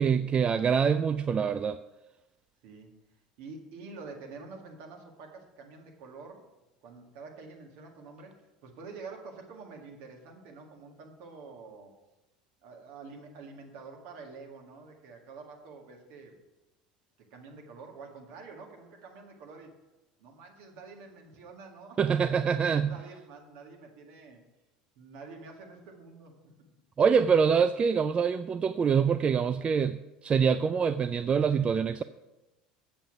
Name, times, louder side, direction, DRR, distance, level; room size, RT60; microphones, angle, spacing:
voice 1, 0.0-1.8 22.0-22.9 27.0-32.0, right 6 dB, 30° right, 12 dB, 0.3 m, -25 dB
voice 2, 3.4-6.5 6.8-11.9 12.6-16.4 17.3-19.7 20.2-24.4 25.0-26.5, right 4 dB, 60° right, 1 dB, 1.9 m, -47 dB
7.8 x 7.1 x 6.0 m, 1.0 s
figure-of-eight pair, 70°, 4 cm